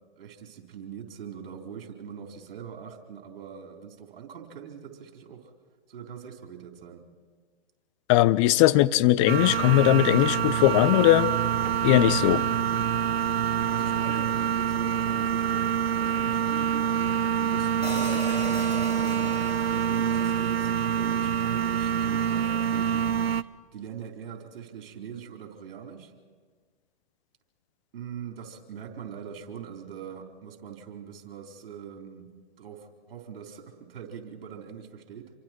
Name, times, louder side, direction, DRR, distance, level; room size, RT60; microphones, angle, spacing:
voice 1, 0.2-5.5 5.9-7.0 12.2-13.1 13.7-19.4 19.7-20.7 21.0-23.2 23.7-26.1 27.9-35.3, right 8 dB, 65° right, 3 dB, 4.1 m, -42 dB
voice 2, 8.1-11.3 11.8-12.4, left 15 dB, 30° left, 17 dB, 0.6 m, -19 dB
sound 1, 9.3-23.4, right 8 dB, 85° right, 0.8 m, -26 dB
Hi-hat, 17.8-22.0, left 3 dB, 85° left, 4.9 m, -41 dB
27.5 x 24.0 x 4.5 m, 1.5 s
hypercardioid pair, 130°, 30 cm